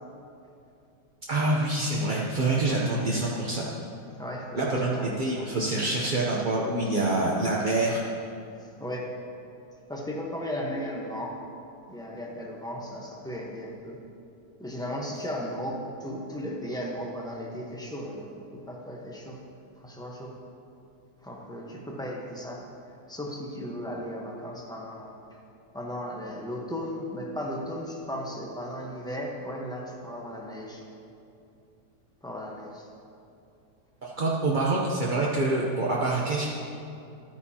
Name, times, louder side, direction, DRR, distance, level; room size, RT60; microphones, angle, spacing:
voice 1, 1.3-3.7 4.6-8.0 34.0-36.4, right 2 dB, 50° right, -4 dB, 0.6 m, -26 dB
voice 2, 4.2-4.6 4.9-5.5 6.6-6.8 8.8-9.1 9.9-11.3 11.9-14.0 14.6-18.3 18.7-19.4 19.8-20.4 21.2-22.6 23.1-25.1 25.7-30.8 32.2-32.9, equal, 5° left, -2 dB, 0.6 m, -36 dB
13.0 x 9.2 x 2.8 m, 2.6 s
omnidirectional pair, 1.9 m